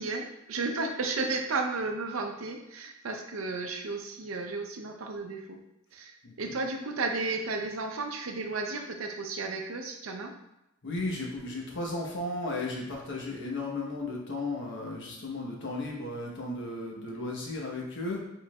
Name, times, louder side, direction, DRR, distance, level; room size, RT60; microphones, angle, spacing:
voice 1, 0.0-5.6 5.9-10.3, right 3 dB, 70° right, 4 dB, 0.6 m, -33 dB
voice 2, 10.8-18.2, left 2 dB, 60° left, -1 dB, 1.0 m, -35 dB
5.0 x 3.8 x 2.3 m, 0.89 s
head